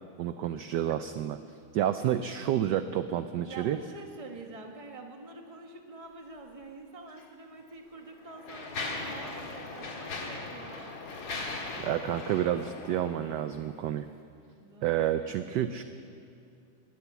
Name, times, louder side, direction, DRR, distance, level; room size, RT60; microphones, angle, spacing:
voice 1, 0.2-1.4 1.7-3.8 11.8-14.1 14.8-15.8, right 11 dB, 75° right, 10 dB, 1.0 m, -29 dB
voice 2, 3.1-11.0 14.5-15.8, right 3 dB, 20° right, 3 dB, 1.1 m, -46 dB
Mechanisms, 7.1-7.2 8.0-13.7, left 3 dB, 65° left, 2.4 m, -39 dB
20.0 x 8.2 x 8.1 m, 2.5 s
omnidirectional pair, 2.3 m